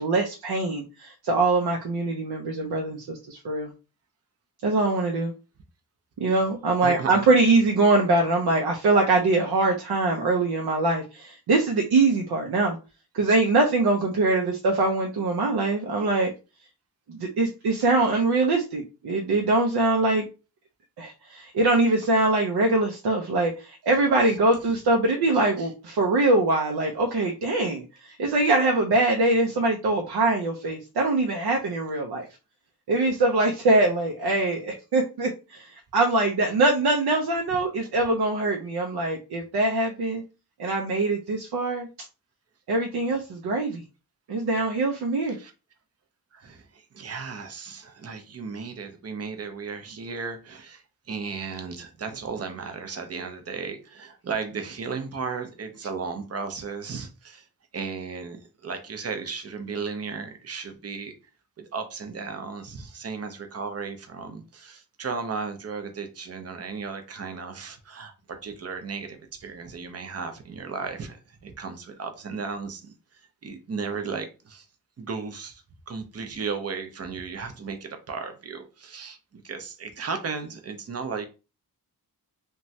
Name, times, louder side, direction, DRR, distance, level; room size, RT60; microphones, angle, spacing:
voice 1, 0.0-3.7 4.6-5.3 6.2-12.8 13.1-16.3 17.1-20.3 21.0-32.3 32.9-40.2 40.6-41.9 42.7-43.8 44.3-45.4, right 2 dB, 85° right, 0.6 m, -23 dB
voice 2, 6.8-7.2 24.2-24.4 24.7-24.8 25.3-25.7 37.8-38.1 45.3-45.5 46.3-57.5 57.7-61.1 61.6-74.7 75.0-81.2, right 5 dB, 40° right, 0.5 m, -35 dB
3.0 x 2.2 x 2.6 m
wide cardioid pair, 160°, 38 cm